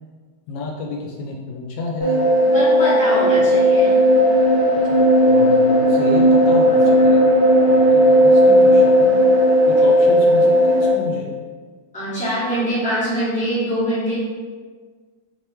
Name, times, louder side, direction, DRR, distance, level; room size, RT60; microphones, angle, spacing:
voice 1, 0.5-2.2 3.4-3.5 5.3-7.3 7.7-9.1 9.6-11.3, left 3 dB, 80° left, -1 dB, 1.3 m, -30 dB
sound 1, 2.0-10.9, equal, 30° right, 1.5 m, -14 dB
voice 2, 2.4-3.9 11.9-14.2, equal, 5° left, -11 dB, 1.1 m, -23 dB
3.2 x 2.8 x 3.4 m, 1.5 s
omnidirectional pair, 2.0 m